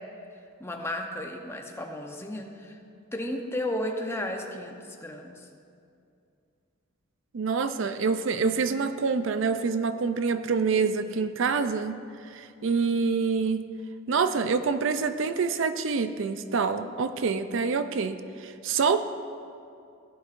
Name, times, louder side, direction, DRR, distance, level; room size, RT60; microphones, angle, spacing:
voice 1, 0.6-2.8 3.1-5.5, left 1 dB, 15° left, 3 dB, 0.8 m, -34 dB
voice 2, 7.3-13.7 14.1-19.0, right 5 dB, 65° right, 10 dB, 0.5 m, -26 dB
16.0 x 11.5 x 2.5 m, 2.5 s
head